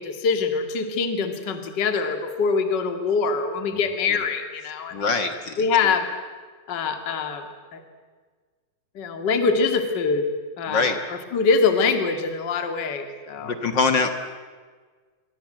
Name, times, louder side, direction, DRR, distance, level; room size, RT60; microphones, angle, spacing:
voice 1, 0.0-5.1 5.6-6.1 6.7-7.5 7.7-7.8 8.9-10.3 10.6-13.5, left 5 dB, 35° left, 6 dB, 2.3 m, -24 dB
voice 2, 4.9-5.6 10.7-11.0 13.4-14.1, left 4 dB, 50° left, 7 dB, 1.4 m, -23 dB
27.5 x 23.5 x 7.8 m, 1.5 s
omnidirectional pair, 4.2 m